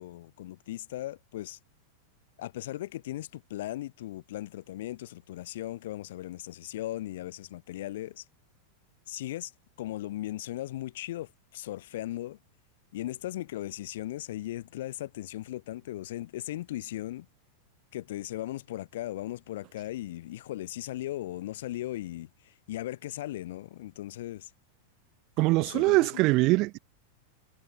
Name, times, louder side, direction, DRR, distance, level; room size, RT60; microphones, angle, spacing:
voice 1, 0.0-1.6 2.4-8.2 9.1-9.5 9.8-12.4 12.9-17.3 17.9-24.5 25.6-26.2, left 14 dB, 55° left, 1.2 m, -37 dB
voice 2, 25.4-26.8, right 22 dB, 40° right, 0.4 m, -23 dB
figure-of-eight pair, 90°, 0 cm